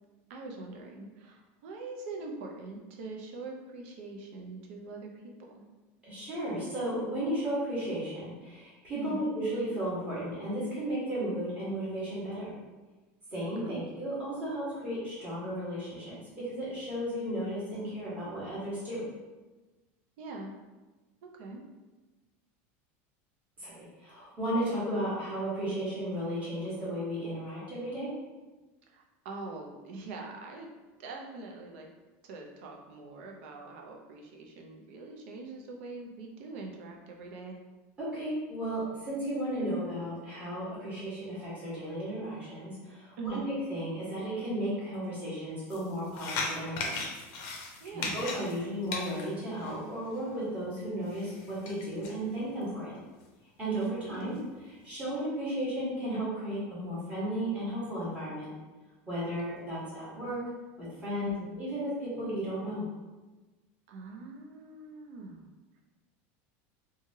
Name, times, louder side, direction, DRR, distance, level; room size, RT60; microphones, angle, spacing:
voice 1, 0.3-5.1 5.5-5.6 8.9-9.2 13.6-13.8 20.2-20.5 21.2-21.6 28.9-30.7 31.0-31.9 32.2-37.6 43.2-43.5 47.8-48.2 53.9-54.4 61.2-61.6 63.9-65.5, right 3 dB, 70° right, 1 dB, 0.6 m, -43 dB
voice 2, 6.1-12.5 13.3-16.2 16.4-19.0 23.6-28.1 38.0-47.0 47.9-52.9 53.6-54.3 54.7-58.5 59.1-60.4 60.8-62.9, right 1 dB, 20° right, -10 dB, 1.3 m, -34 dB
sound 1, 45.7-50.3 51.0-52.2 52.6-52.7 53.2-53.3 53.8-54.4, left 3 dB, 50° left, 0.6 m, -38 dB
3.1 x 2.3 x 2.7 m, 1.2 s
supercardioid pair, 160°, 7 cm